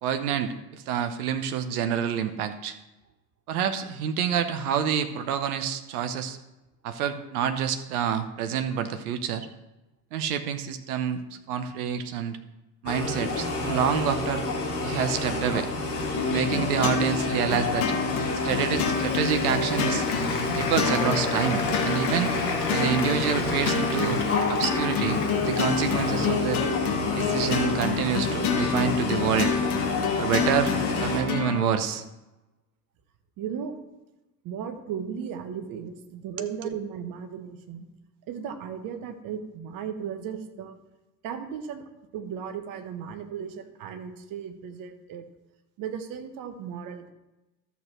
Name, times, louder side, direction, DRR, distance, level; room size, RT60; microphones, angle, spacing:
voice 1, 0.0-2.8 3.5-6.4 6.8-9.5 10.1-11.2 11.5-12.4 12.8-14.4 14.8-15.7 16.3-17.9 18.4-20.1 20.5-22.3 22.7-24.2 24.5-26.6 27.1-29.5 30.2-30.7 31.0-32.0 36.4-36.7, right 8 dB, 65° right, 9 dB, 0.9 m, -27 dB
sound 1, 12.9-31.2, left 2 dB, 30° left, 2.4 m, -29 dB
sound 2, 16.2-31.6, left 6 dB, 60° left, 1.4 m, -28 dB
Applause, 18.9-26.5, left 4 dB, 80° left, 1.2 m, -35 dB
voice 2, 33.4-33.7 34.4-37.9 38.3-40.8 41.2-41.8 42.1-45.2 45.8-47.1, right 7 dB, 45° right, 7 dB, 1.3 m, -36 dB
13.0 x 6.8 x 3.1 m, 0.99 s
figure-of-eight pair, 65°, 48 cm